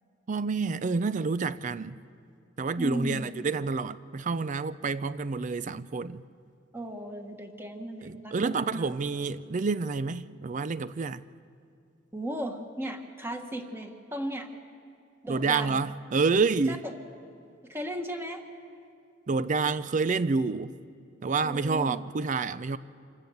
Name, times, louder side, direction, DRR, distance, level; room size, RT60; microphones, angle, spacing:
voice 1, 0.3-2.0 2.6-6.2 8.0-11.2 15.3-16.8 19.3-20.7 21.2-22.8, right 4 dB, 40° right, 0.4 m, -28 dB
voice 2, 2.8-3.3 6.7-8.9 12.1-14.5 15.2-15.8 16.7-16.9 17.6-18.4 21.4-22.0, right 1 dB, 10° right, 1.5 m, -36 dB
26.0 x 14.0 x 7.9 m
head